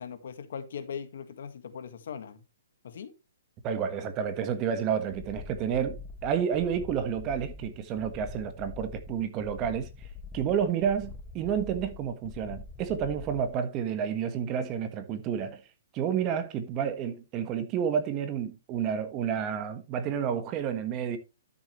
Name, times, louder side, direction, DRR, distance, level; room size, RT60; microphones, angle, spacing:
voice 1, 0.0-2.4 2.8-3.1, left 7 dB, 65° left, 1.7 m, -40 dB
voice 2, 3.6-10.1 10.3-15.6 15.9-21.2, right 8 dB, 25° right, 1.4 m, -30 dB
sound 1, 5.1-13.6, left 4 dB, 10° left, 1.1 m, -44 dB
12.0 x 6.9 x 3.2 m
hypercardioid pair, 155°, 0 cm